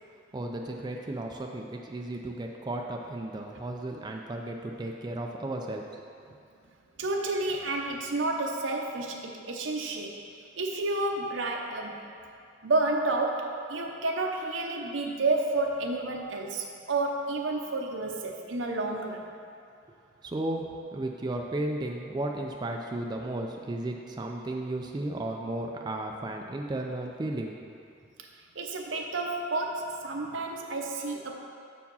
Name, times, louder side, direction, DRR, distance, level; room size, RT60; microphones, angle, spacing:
voice 1, 0.3-6.0 20.2-20.7 20.9-27.5, right 1 dB, 20° right, 1 dB, 0.4 m, -34 dB
voice 2, 7.0-12.0 12.6-19.3 28.5-31.3, right 2 dB, 75° right, 2 dB, 0.8 m, -30 dB
7.1 x 4.7 x 5.4 m, 2.4 s
head